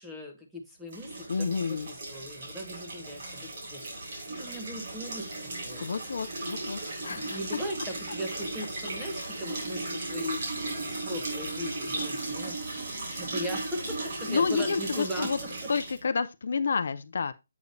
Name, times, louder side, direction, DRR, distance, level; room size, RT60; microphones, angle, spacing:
voice 1, 0.0-5.9 7.1-15.3, equal, 5° right, 1.0 m, -39 dB
sound 1, 0.9-16.0, right 2 dB, 45° right, 3.8 m, -36 dB
voice 2, 1.3-1.9 5.8-7.4 9.2-9.3 14.3-15.4 15.7-17.4, left 5 dB, 60° left, 0.4 m, -29 dB
8.1 x 4.9 x 2.6 m
hypercardioid pair, 170°, 0 cm